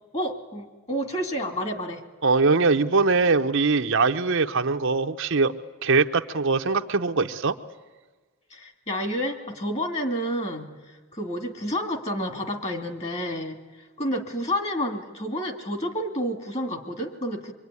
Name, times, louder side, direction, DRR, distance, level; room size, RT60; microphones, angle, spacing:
voice 1, 0.1-2.0 8.5-13.6 14.0-17.5, equal, 30° left, 6 dB, 2.3 m, -30 dB
voice 2, 2.2-5.5 5.8-7.5, right 4 dB, 55° right, 6 dB, 0.8 m, -22 dB
24.5 x 24.0 x 9.7 m, 1.3 s
head